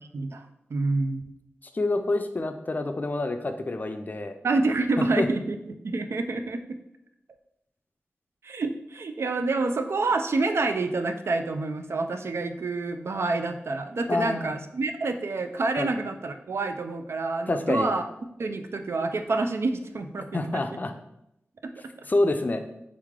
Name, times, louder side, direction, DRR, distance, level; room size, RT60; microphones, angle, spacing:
voice 1, 0.1-0.4 0.7-1.2 4.4-6.8 8.4-18.0 18.4-20.3 20.5-20.6 22.0-22.1, right 3 dB, 70° right, 7 dB, 0.4 m, -28 dB
voice 2, 1.7-4.4 5.0-5.3 14.1-14.6 15.8-15.9 17.5-17.9 20.3-20.9 22.1-22.6, left 2 dB, 40° left, 8 dB, 0.4 m, -27 dB
3.6 x 3.2 x 3.6 m, 0.81 s
wide cardioid pair, 75°, 5 cm